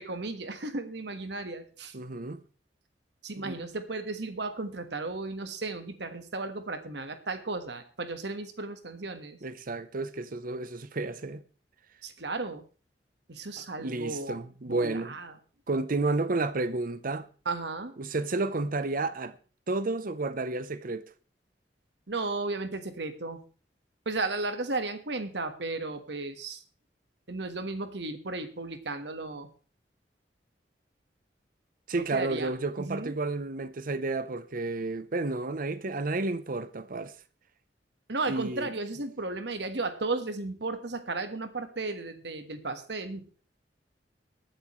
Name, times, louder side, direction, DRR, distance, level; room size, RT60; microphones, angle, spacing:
voice 1, 0.0-2.0 3.2-9.4 12.0-12.6 13.3-14.4 14.6-15.3 17.4-17.9 22.1-23.4 24.0-26.6 27.3-29.5 31.9-32.5 32.8-33.1 38.1-43.3, right 3 dB, 70° right, 1.5 m, -34 dB
voice 2, 1.9-2.4 3.4-3.6 9.4-11.4 13.6-15.1 15.7-17.3 18.0-19.4 19.7-21.1 31.9-37.1 38.3-38.7, right 3 dB, 55° right, 0.8 m, -31 dB
22.5 x 8.9 x 3.2 m
head